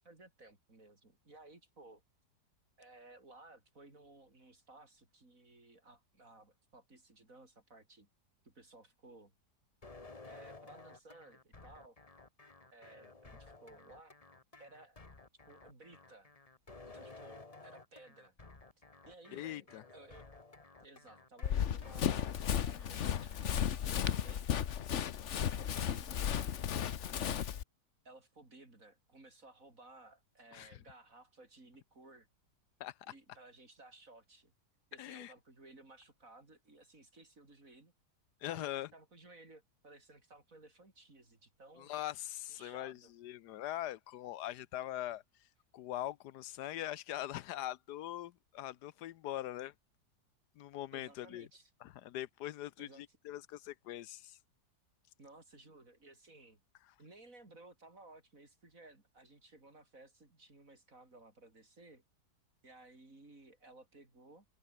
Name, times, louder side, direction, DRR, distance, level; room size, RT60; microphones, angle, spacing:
voice 1, 0.0-2.0 2.8-8.1 8.4-9.3 10.3-12.0 12.7-14.2 14.6-15.0 15.5-16.3 16.9-18.3 19.1-20.3 20.8-24.5 25.3-26.6 27.2-27.5 28.1-32.3 33.1-34.5 34.9-37.9 38.5-42.0 42.5-43.1 50.9-51.7 52.8-53.2 55.2-56.6 57.0-62.0 62.6-64.5, right 2 dB, 50° right, 5.4 m, -58 dB
sound 1, 9.8-23.4, left 3 dB, 20° left, 1.7 m, -55 dB
voice 2, 19.3-19.8 30.5-30.8 32.8-33.1 35.0-35.3 38.4-38.9 41.8-45.5 45.7-49.7 50.6-51.5 51.8-54.4, left 13 dB, 75° left, 1.2 m, -42 dB
Run, 21.4-27.6, left 9 dB, 50° left, 1.1 m, -34 dB
open air
omnidirectional pair, 1.8 m